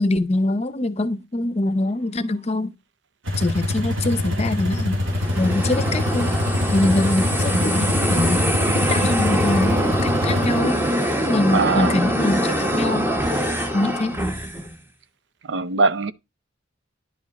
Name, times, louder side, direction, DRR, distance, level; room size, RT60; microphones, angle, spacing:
voice 1, 0.0-2.7 3.4-5.0 5.4-6.3 6.7-8.4 8.7-10.9 11.2-13.1 13.7-14.2, left 2 dB, 30° left, 0.6 m, -23 dB
sound 1, 3.3-10.6, left 1 dB, 80° right, 2.5 m, -24 dB
sound 2, 5.0-14.7, equal, 10° right, 0.9 m, -23 dB
voice 2, 11.5-12.0 15.5-16.1, right 4 dB, 60° right, 0.5 m, -21 dB
10.0 x 5.3 x 4.0 m
head